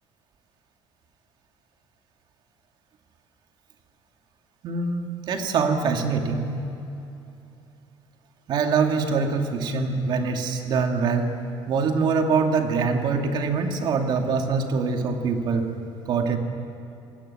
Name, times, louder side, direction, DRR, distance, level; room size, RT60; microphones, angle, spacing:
voice 1, 4.6-6.5 8.5-11.3 11.7-15.7 16.1-16.4, right 5 dB, 50° right, 4 dB, 2.4 m, -24 dB
26.5 x 17.5 x 8.7 m, 2.8 s
cardioid pair, 150°, 10 cm